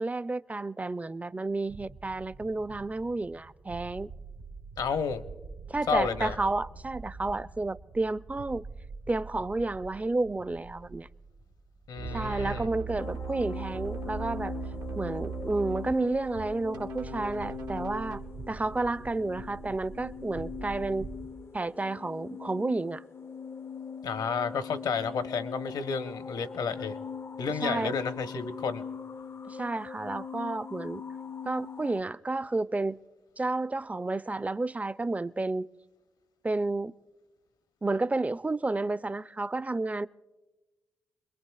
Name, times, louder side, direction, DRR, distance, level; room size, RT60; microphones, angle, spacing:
voice 1, 0.0-4.1 5.7-8.6 9.1-11.1 12.1-14.5 15.0-18.2 18.5-21.1 21.5-23.0 27.6-27.9 29.5-31.0 31.5-33.0 33.4-35.7 36.4-36.9 37.8-40.1, right 2 dB, 20° right, 0.4 m, -31 dB
sound 1, 1.5-21.3, right 4 dB, 85° right, 1.6 m, -45 dB
voice 2, 4.8-5.2 5.9-6.4 11.9-12.7 24.0-26.9 27.4-28.8, left 5 dB, 75° left, 0.9 m, -31 dB
sound 2, 12.0-15.9 16.7-18.2, right 6 dB, 70° right, 0.9 m, -39 dB
sound 3, 13.0-32.0, left 6 dB, 40° left, 0.4 m, -41 dB
28.0 x 22.0 x 2.3 m
supercardioid pair, 40°, 7 cm